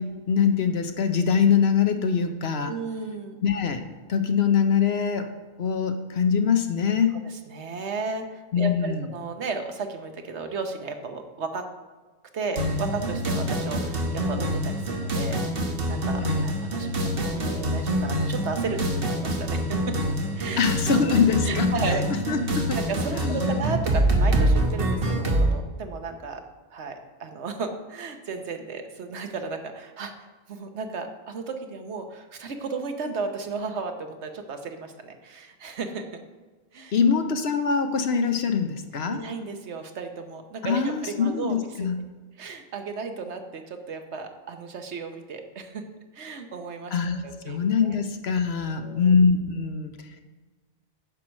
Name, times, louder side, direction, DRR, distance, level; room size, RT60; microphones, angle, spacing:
voice 1, 0.0-2.7 3.4-3.8 4.1-5.3 5.6-7.1 8.5-9.1 16.2-16.5 20.6-22.8 23.1-23.6 36.9-39.2 40.6-41.9 46.9-47.2 47.5-49.9, left 6 dB, 65° left, 7 dB, 1.0 m, -23 dB
voice 2, 2.6-3.4 7.5-11.7 12.3-15.4 15.9-20.0 20.4-20.6 21.4-22.1 22.7-26.4 26.7-36.1 36.7-37.0 39.1-41.7 42.4-45.8 46.1-47.0 47.2-48.0 48.6-49.1 50.1-50.2, right 4 dB, 70° right, 6 dB, 1.2 m, -34 dB
sound 1, 12.6-25.5, right 1 dB, 55° right, 1.4 m, -25 dB
9.7 x 4.6 x 6.3 m, 1.3 s
omnidirectional pair, 1.2 m